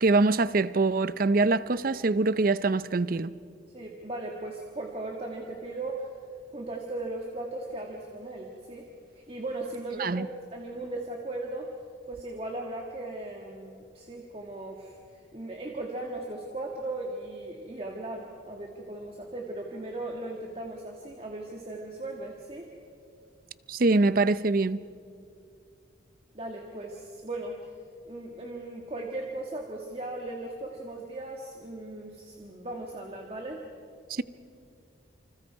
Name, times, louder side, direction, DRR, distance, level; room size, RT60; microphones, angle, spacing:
voice 1, 0.0-3.3 10.0-10.3 23.7-24.8 34.1-34.2, right 3 dB, 45° right, 0.5 m, -24 dB
voice 2, 3.7-6.1 6.5-8.9 9.1-11.7 12.1-15.0 15.3-22.7 26.3-27.6 28.0-33.6, right 2 dB, 30° right, 1.7 m, -37 dB
28.5 x 26.0 x 4.7 m
head